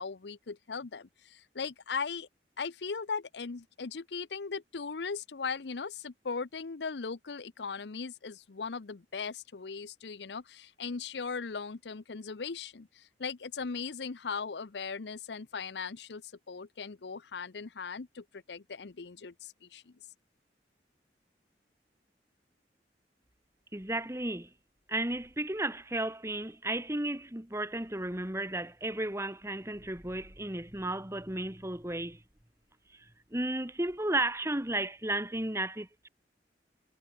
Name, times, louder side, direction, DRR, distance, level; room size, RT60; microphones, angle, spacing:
voice 1, 0.0-2.3 2.6-19.9, left 5 dB, 75° left, 0.7 m, -38 dB
voice 2, 23.7-24.5 24.9-32.2 33.3-36.1, right 1 dB, 15° right, 2.5 m, -33 dB
head